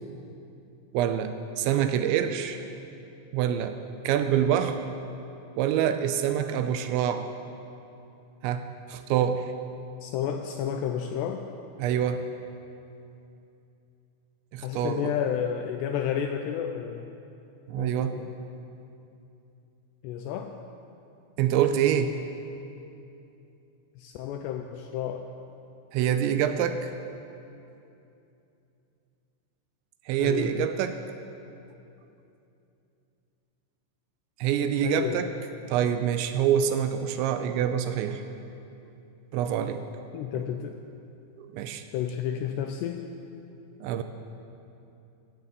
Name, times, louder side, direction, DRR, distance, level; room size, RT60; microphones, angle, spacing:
voice 1, 0.9-2.7 3.3-3.8 4.0-4.9 5.6-7.3 8.4-9.5 11.8-12.3 14.5-15.2 17.7-18.1 21.4-22.2 25.9-26.9 30.1-31.0 34.4-35.3 35.7-38.2 39.3-39.8 41.4-41.8 43.8-44.0, right 9 dB, 85° right, 9 dB, 2.7 m, -26 dB
voice 2, 10.0-11.4 14.6-17.1 17.8-18.3 20.0-20.5 24.0-25.3 30.2-30.7 34.8-35.2 40.1-40.8 41.9-43.0, left 9 dB, 90° left, 5 dB, 2.4 m, -31 dB
15.0 x 9.3 x 8.1 m, 2.8 s
omnidirectional pair, 5.5 m